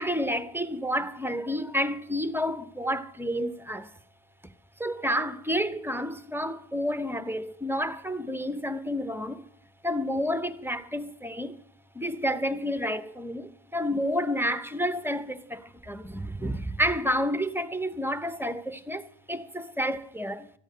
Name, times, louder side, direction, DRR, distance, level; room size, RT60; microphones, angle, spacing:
voice 1, 0.0-3.9 4.8-9.5 9.8-11.6 11.9-20.5, equal, 5° right, 0.8 m, -30 dB
13.5 x 8.9 x 6.6 m
wide cardioid pair, 60°, 42 cm